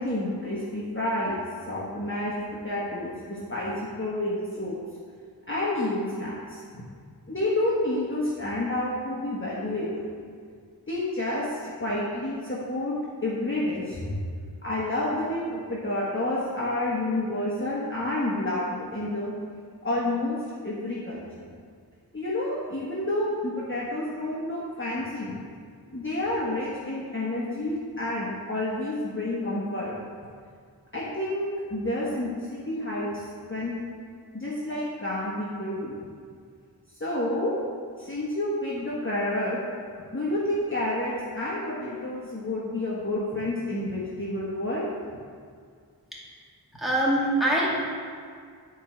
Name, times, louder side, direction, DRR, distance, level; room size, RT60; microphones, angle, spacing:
voice 1, 0.0-1.4 1.7-4.8 5.5-6.6 7.3-10.1 10.9-11.5 11.8-12.9 13.2-14.1 14.6-19.3 19.8-21.5 22.1-25.4 25.9-30.0 30.9-33.2 33.5-33.7 34.3-36.0 37.0-37.5 38.0-39.6 40.1-44.8, left 1 dB, 30° left, -7 dB, 1.4 m, -29 dB
voice 2, 46.8-47.8, right 1 dB, ahead, -7 dB, 2.3 m, -23 dB
10.0 x 4.7 x 4.4 m, 2.1 s
wide cardioid pair, 50°, 39 cm